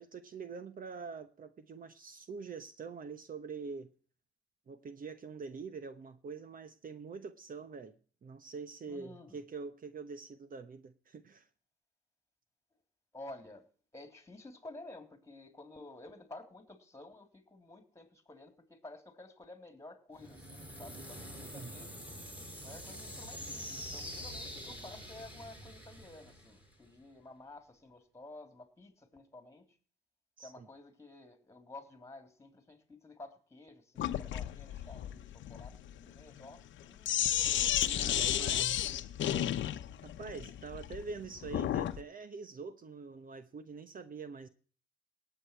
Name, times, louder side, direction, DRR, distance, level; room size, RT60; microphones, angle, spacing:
voice 1, 0.0-3.9 4.7-7.9 8.2-11.5 21.5-21.7 30.4-30.7 37.8-38.8 40.0-44.5, right 5 dB, 45° right, 1.0 m, -45 dB
voice 2, 8.9-9.4 13.1-13.7 13.9-22.0 22.6-29.8 30.4-37.3 38.1-38.7, left 2 dB, 15° left, 3.4 m, -52 dB
sound 1, 20.1-27.0, equal, 10° right, 7.8 m, -46 dB
Sink (filling or washing), 34.0-42.0, left 12 dB, 70° left, 0.9 m, -33 dB
18.5 x 8.1 x 4.6 m
cardioid pair, 90°, 20 cm